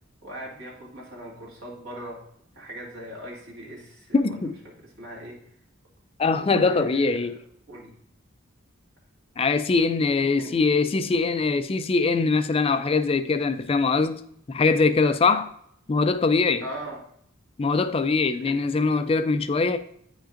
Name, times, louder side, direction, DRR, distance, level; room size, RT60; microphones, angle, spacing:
voice 1, 0.2-2.2 2.5-4.4 4.6-5.4 6.4-7.1 7.7-7.9 10.4-10.5 16.6-17.0 18.4-18.6, equal, 75° right, 2.3 m, -39 dB
voice 2, 4.1-4.5 6.2-7.4 9.4-14.2 14.5-15.5 15.9-16.6 17.6-19.8, left 4 dB, 30° left, 0.3 m, -22 dB
9.1 x 5.1 x 2.5 m
head